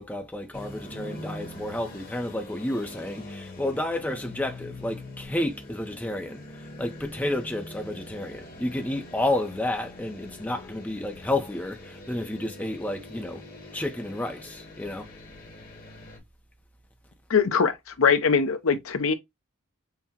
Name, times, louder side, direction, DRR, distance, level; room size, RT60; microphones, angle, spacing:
voice 1, 0.0-6.4 6.8-13.4 13.7-15.1, left 1 dB, 10° left, 0.5 m, -31 dB
sound 1, 0.5-16.2, left 1 dB, 40° left, 1.1 m, -43 dB
voice 2, 17.3-19.1, left 6 dB, 75° left, 0.6 m, -22 dB
5.6 x 2.1 x 2.8 m
head